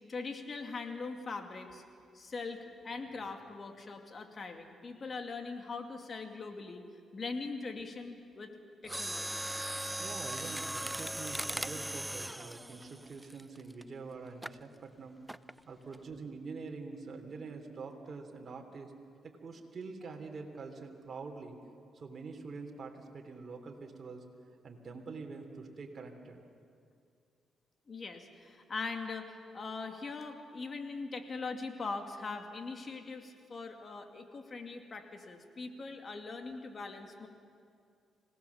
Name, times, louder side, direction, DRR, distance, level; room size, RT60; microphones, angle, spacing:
voice 1, 0.1-1.8 2.1-6.9 7.1-8.5 8.8-9.5 27.9-37.3, left 4 dB, 45° left, 5 dB, 2.3 m, -41 dB
Mechanisms, 8.8-13.8 14.4-14.6 15.3-15.6 15.9-16.0, right 1 dB, 5° right, 0.4 m, -38 dB
voice 2, 10.0-15.2 15.6-18.9 19.2-21.6 21.9-24.2 24.6-26.4, right 4 dB, 45° right, 2 dB, 3.0 m, -45 dB
25.5 x 18.0 x 7.1 m, 2.4 s
cardioid pair, 75°, 0 cm